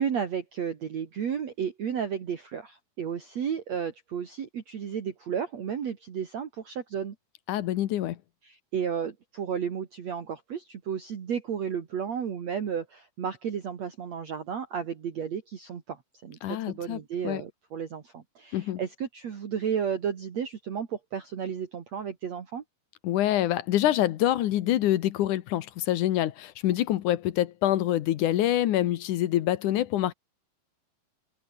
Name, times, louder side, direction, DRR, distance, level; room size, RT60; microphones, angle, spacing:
voice 1, 0.0-7.1 8.4-22.6, right 7 dB, 50° right, 3.1 m, -33 dB
voice 2, 7.5-8.2 16.4-17.4 18.5-18.8 23.0-30.1, left 13 dB, 65° left, 2.2 m, -26 dB
omnidirectional pair, 4.4 m